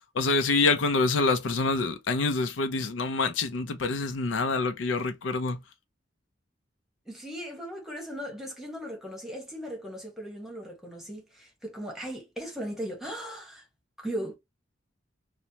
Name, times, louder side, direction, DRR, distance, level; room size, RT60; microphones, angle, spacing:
voice 1, 0.1-5.6, left 3 dB, 80° left, 0.5 m, -26 dB
voice 2, 7.1-13.6 14.0-14.4, equal, ahead, 1.0 m, -38 dB
3.0 x 2.1 x 2.7 m
head